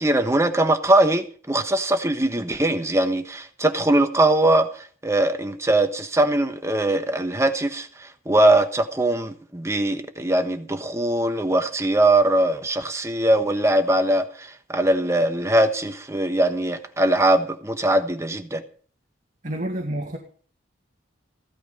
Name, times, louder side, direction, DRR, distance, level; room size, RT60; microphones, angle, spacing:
voice 1, 0.0-18.6, right 1 dB, 15° right, 1.2 m, -21 dB
voice 2, 19.4-20.2, right 1 dB, 40° right, 2.2 m, -28 dB
15.5 x 12.5 x 5.4 m
head